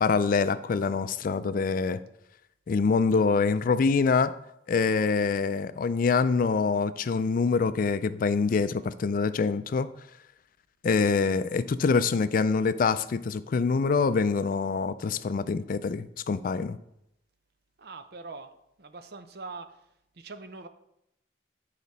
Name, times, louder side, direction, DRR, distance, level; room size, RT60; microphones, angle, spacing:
voice 1, 0.0-2.0 2.7-4.3 4.7-9.9 10.8-16.8, left 4 dB, 50° left, 14 dB, 0.4 m, -25 dB
voice 2, 17.8-18.5 18.8-19.7 20.2-20.7, right 3 dB, 65° right, 9 dB, 0.7 m, -42 dB
10.5 x 5.0 x 4.1 m, 0.80 s
head